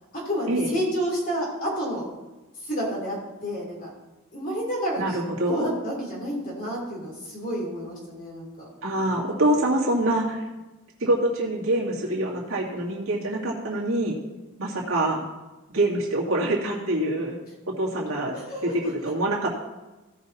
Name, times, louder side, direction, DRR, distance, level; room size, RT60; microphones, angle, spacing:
voice 1, 0.1-2.1 2.6-3.2 3.4-3.9 4.3-8.7 18.3-18.9, equal, 40° left, -3 dB, 3.4 m, -30 dB
voice 2, 5.0-5.7 8.8-10.4 11.0-14.2 14.6-15.2 15.7-17.4 17.7-18.3 18.6-19.5, right 1 dB, 70° right, -3 dB, 2.3 m, -25 dB
16.0 x 5.9 x 4.2 m, 1.1 s
head